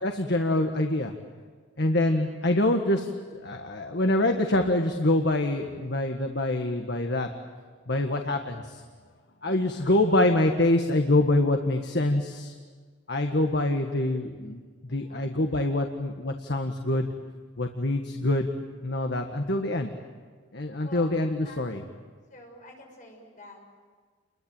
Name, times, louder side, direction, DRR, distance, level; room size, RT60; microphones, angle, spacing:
voice 1, 0.0-1.1 1.8-7.3 7.9-8.8 9.4-12.5 13.1-17.1 17.6-18.5 18.8-19.9 20.5-21.8, left 1 dB, 60° left, 4 dB, 1.7 m, -25 dB
voice 2, 14.8-15.3 20.8-21.6 22.3-23.6, left 2 dB, 40° left, 1 dB, 6.7 m, -48 dB
30.0 x 22.5 x 9.0 m, 1.5 s
head